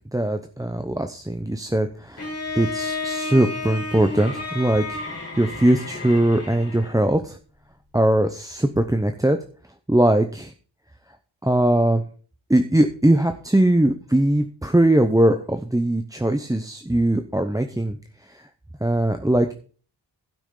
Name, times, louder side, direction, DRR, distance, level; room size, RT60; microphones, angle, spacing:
voice 1, 0.1-2.3 2.6-5.0 5.4-7.4 7.9-9.4 9.9-10.5 11.4-12.0 12.5-18.0 18.8-19.5, right 1 dB, 10° right, 6 dB, 0.7 m, -20 dB
Bowed string instrument, 2.2-7.0, left 3 dB, 30° left, 3.0 m, -32 dB
16.0 x 6.0 x 3.8 m, 0.40 s
wide cardioid pair, 95°, 46 cm